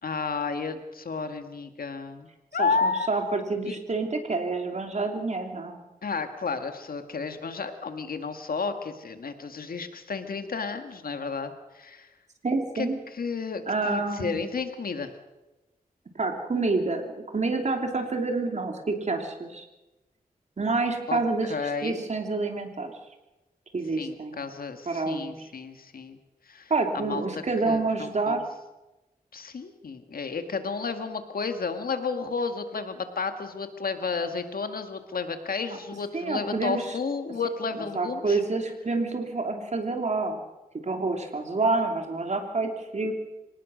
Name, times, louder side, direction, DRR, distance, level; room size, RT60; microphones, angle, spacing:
voice 1, 0.0-3.1 3.6-3.8 6.0-12.1 12.8-12.9 13.2-15.1 21.1-21.2 21.5-22.0 24.0-26.2 26.5-28.4 29.3-38.4, left 4 dB, 80° left, 7 dB, 1.9 m, -32 dB
voice 2, 2.6-5.8 12.4-13.0 13.7-14.4 16.1-19.7 20.6-22.9 23.7-24.4 24.9-25.5 26.7-28.4 36.1-36.8 37.7-40.4 40.8-43.1, right 3 dB, 50° right, 4 dB, 3.1 m, -28 dB
25.5 x 18.5 x 6.4 m, 1.0 s
wide cardioid pair, 120°, 15 cm